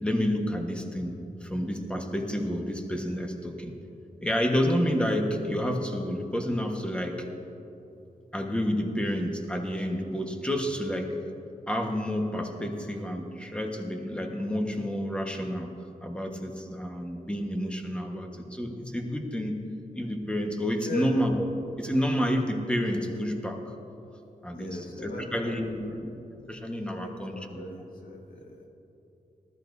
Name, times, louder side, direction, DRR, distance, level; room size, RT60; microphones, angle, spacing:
voice 1, 0.0-1.1 1.4-3.7 4.2-7.3 8.3-11.1 11.7-15.7 16.0-19.6 19.9-21.4 21.8-23.6 24.4-26.1 26.5-27.7, equal, 5° left, 2 dB, 1.3 m, -29 dB
voice 2, 20.8-21.2 24.5-26.0 26.9-28.7, left 1 dB, 70° left, 0 dB, 1.9 m, -39 dB
19.5 x 13.0 x 2.7 m, 2.9 s
wide cardioid pair, 100°, 15 cm